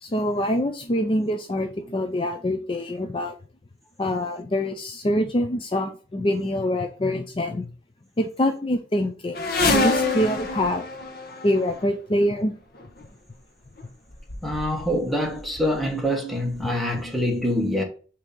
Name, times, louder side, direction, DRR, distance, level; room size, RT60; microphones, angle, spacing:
voice 1, 0.0-3.4 4.0-7.7 8.2-10.8 11.4-12.5, left 1 dB, 30° left, 0.5 m, -25 dB
sound 1, 9.3-11.8 12.8-13.0 13.8-13.9 14.1-15.0 15.3-15.9 16.6-16.7 17.0-17.1, left 3 dB, 55° left, 1.0 m, -26 dB
voice 2, 14.4-17.8, equal, ahead, 1.2 m, -25 dB
6.2 x 2.9 x 5.2 m
head